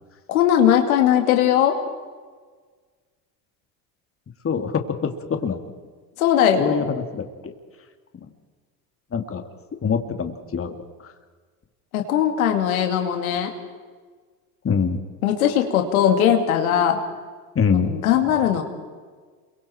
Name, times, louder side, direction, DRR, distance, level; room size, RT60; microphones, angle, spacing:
voice 1, 0.3-1.8 6.2-6.8 11.9-13.5 15.2-17.0 17.7-18.6, left 9 dB, 90° left, 4 dB, 2.5 m, -19 dB
voice 2, 4.4-5.1 5.4-5.6 6.6-7.5 8.2-8.3 9.1-9.4 9.8-11.1 14.6-15.0 17.5-17.9, left 6 dB, 30° left, 6 dB, 2.6 m, -24 dB
28.0 x 23.5 x 4.5 m, 1.5 s
hypercardioid pair, 80°, 41 cm